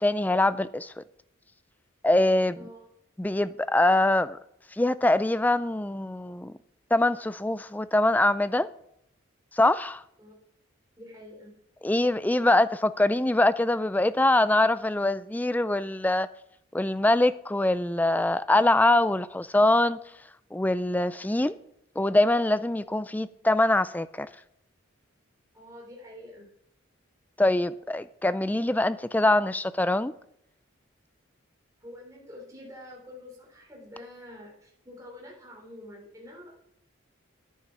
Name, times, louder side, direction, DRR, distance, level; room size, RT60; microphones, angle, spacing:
voice 1, 0.0-1.0 2.0-2.6 3.2-4.4 4.8-6.5 6.9-8.7 9.5-10.0 11.8-16.3 16.7-20.0 20.5-21.6 22.0-24.3 27.4-30.1, left 1 dB, 10° left, 0.3 m, -23 dB
voice 2, 2.5-2.9 10.2-10.3 11.0-11.5 22.9-23.2 25.5-26.5 31.8-36.5, left 1 dB, 15° right, 3.6 m, -47 dB
10.0 x 9.2 x 4.8 m
head